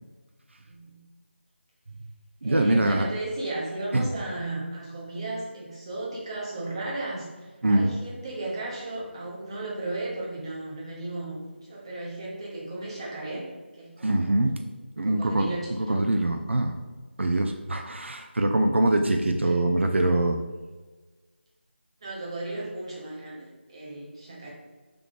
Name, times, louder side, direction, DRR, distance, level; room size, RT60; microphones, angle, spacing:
voice 1, 0.7-1.0 2.4-13.4 13.8-14.5 15.0-16.0 19.5-19.6 22.0-24.5, right 2 dB, 25° right, -4 dB, 0.8 m, -35 dB
voice 2, 2.4-3.1 3.9-4.1 7.6-7.9 14.0-14.6 15.0-16.8 17.2-20.4, right 1 dB, 75° right, 4 dB, 0.4 m, -23 dB
3.5 x 3.2 x 3.6 m, 1.3 s
figure-of-eight pair, 170°, 6 cm